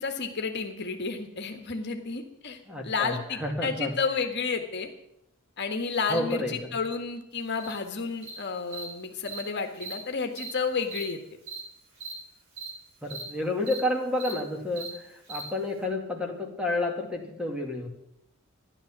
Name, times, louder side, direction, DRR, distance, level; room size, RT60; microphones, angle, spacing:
voice 1, 0.0-4.9 5.6-11.2, left 4 dB, 55° left, 5 dB, 1.6 m, -31 dB
voice 2, 2.7-3.9 6.1-6.8 13.0-17.9, left 1 dB, 5° right, 1 dB, 2.5 m, -30 dB
Cricket, 7.6-7.7 8.2-8.3 8.7-8.8 9.3-9.4 9.8-9.9 10.4-10.5 10.9-11.0 11.5-11.6 11.9-12.1 12.6-12.7 13.0-13.2 13.6-13.8 14.1-14.3 14.7-14.9 15.3-15.4, right 5 dB, 60° right, 6.0 m, -38 dB
14.0 x 11.0 x 7.4 m, 0.80 s
head